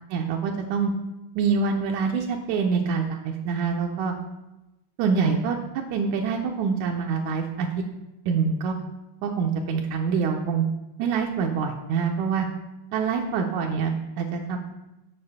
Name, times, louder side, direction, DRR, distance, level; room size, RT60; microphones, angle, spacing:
voice 1, 0.1-0.9 1.3-4.1 5.0-5.6 5.9-7.7 8.2-8.7 9.2-10.7 11.0-12.5 12.9-14.6, right 5 dB, 80° right, 1 dB, 1.7 m, -25 dB
6.9 x 6.8 x 5.5 m, 0.96 s
omnidirectional pair, 4.1 m